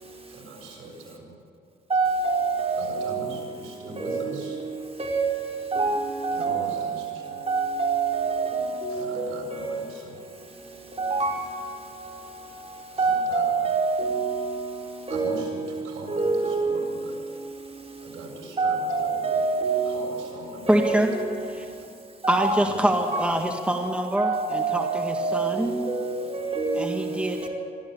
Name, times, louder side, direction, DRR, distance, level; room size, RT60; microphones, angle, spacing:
voice 1, 0.3-1.4 2.8-4.6 6.3-7.4 8.9-10.2 12.9-13.6 15.1-17.5 18.0-19.3 19.8-21.0 22.5-22.8, right 2 dB, 85° right, 7.5 m, -41 dB
voice 2, 1.9-3.0 4.0-4.4 5.0-6.8 7.5-9.7 11.0-11.5 13.0-14.5 15.1-15.4 16.1-16.7 18.6-20.0 20.7-21.0 22.2-22.7 23.1-23.3 24.2-27.1 27.4-27.5, right 4 dB, 30° right, 4.1 m, -26 dB
voice 3, 20.7-21.1 21.5-21.7 22.3-25.8 26.8-27.5, right 1 dB, 5° right, 1.9 m, -25 dB
23.5 x 14.0 x 8.5 m
cardioid pair, 90°, 20 cm